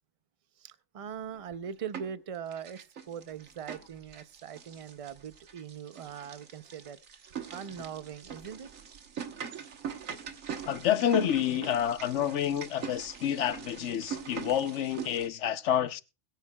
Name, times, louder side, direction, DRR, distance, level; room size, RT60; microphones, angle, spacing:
voice 1, 0.6-8.7, right 8 dB, 45° right, 0.4 m, -41 dB
sound 1, 1.3-2.2 2.5-15.3, right 7 dB, 85° right, 1.5 m, -42 dB
voice 2, 10.7-16.0, left 10 dB, 65° left, 1.0 m, -28 dB
21.5 x 9.2 x 2.2 m
omnidirectional pair, 1.3 m